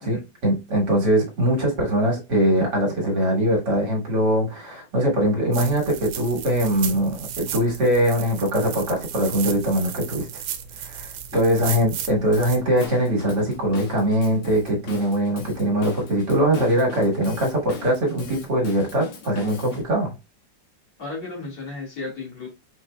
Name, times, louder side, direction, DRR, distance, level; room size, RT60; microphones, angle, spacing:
voice 1, 0.0-10.3 10.8-20.1, right 1 dB, 60° right, 2.0 m, -22 dB
sound 1, 5.5-12.9, right 8 dB, 90° right, 1.4 m, -35 dB
Drum kit / Drum, 12.3-19.8, left 3 dB, 85° left, 1.7 m, -40 dB
voice 2, 21.0-22.5, left 3 dB, 55° left, 2.3 m, -34 dB
4.5 x 4.1 x 2.2 m
omnidirectional pair, 2.1 m